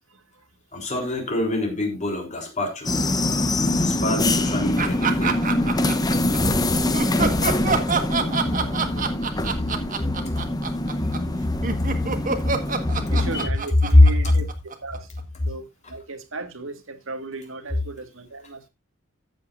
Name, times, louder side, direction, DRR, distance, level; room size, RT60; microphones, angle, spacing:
voice 1, 0.7-2.9 3.7-5.4, left 1 dB, 35° left, 3.7 m, -28 dB
sound 1, 2.8-13.5, left 1 dB, 20° left, 0.8 m, -24 dB
sound 2, 4.8-6.4 6.9-15.2, right 4 dB, 40° right, 1.5 m, -26 dB
voice 2, 8.7-9.4 13.1-14.5 14.8-15.1 15.5-18.7, right 2 dB, 75° right, 1.8 m, -36 dB
14.0 x 8.4 x 2.6 m
head